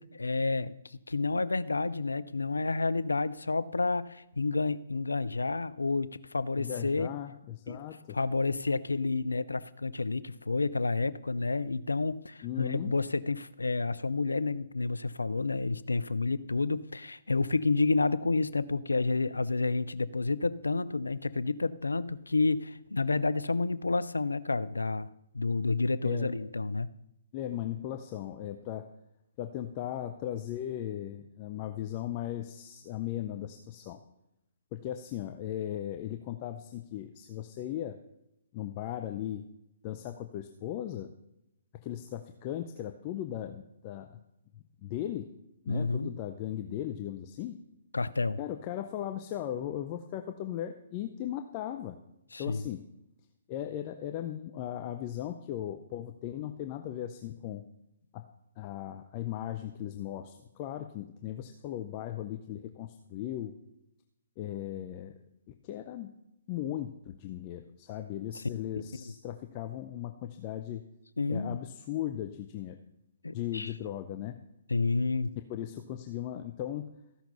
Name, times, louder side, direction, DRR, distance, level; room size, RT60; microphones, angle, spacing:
voice 1, 0.0-7.1 7.7-7.8 8.1-25.1 25.3-26.9 45.7-46.1 47.9-48.4 52.3-52.7 68.3-68.5 71.2-71.6 73.2-73.7 74.7-75.3, left 3 dB, 80° left, 16 dB, 0.5 m, -30 dB
voice 2, 6.6-8.2 12.4-12.9 26.0-26.4 27.3-28.9 29.4-34.0 34.7-38.0 38.5-39.4 39.8-41.1 41.8-44.2 44.8-45.3 45.6-47.6 48.4-52.0 52.4-52.8 53.5-57.7 58.1-58.2 58.6-63.5 64.4-65.2 65.5-66.2 66.5-70.9 71.3-72.8 73.3-74.4 75.5-76.8, left 11 dB, 35° left, 7 dB, 0.7 m, -37 dB
14.5 x 5.9 x 5.4 m, 0.85 s
figure-of-eight pair, 130°, 0 cm